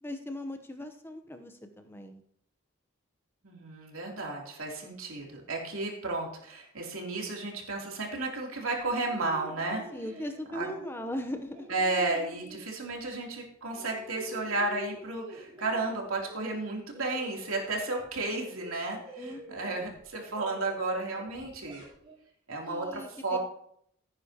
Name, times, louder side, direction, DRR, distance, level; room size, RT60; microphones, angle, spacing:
voice 1, 0.0-2.2 9.9-11.7 19.2-19.8 22.7-23.4, left 1 dB, 10° left, 6 dB, 0.8 m, -39 dB
voice 2, 3.4-9.8 10.5-10.7 11.7-21.8 22.5-23.4, right 2 dB, 80° right, -1 dB, 3.0 m, -33 dB
sound 1, 8.8-13.2 13.5-16.0 16.2-22.2, equal, 25° right, 3.8 m, -48 dB
16.0 x 9.6 x 2.9 m, 0.68 s
head